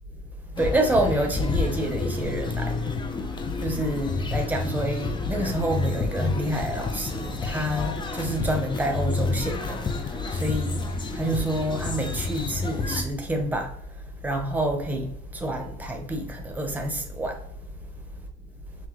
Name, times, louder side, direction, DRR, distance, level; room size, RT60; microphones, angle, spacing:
voice 1, 0.5-2.8 3.6-13.7 14.2-17.4, right 1 dB, 10° right, 0.8 m, -28 dB
sound 1, 0.6-13.0, left 3 dB, 25° left, 0.5 m, -29 dB
5.8 x 2.2 x 3.0 m
cardioid pair, 110°, 17 cm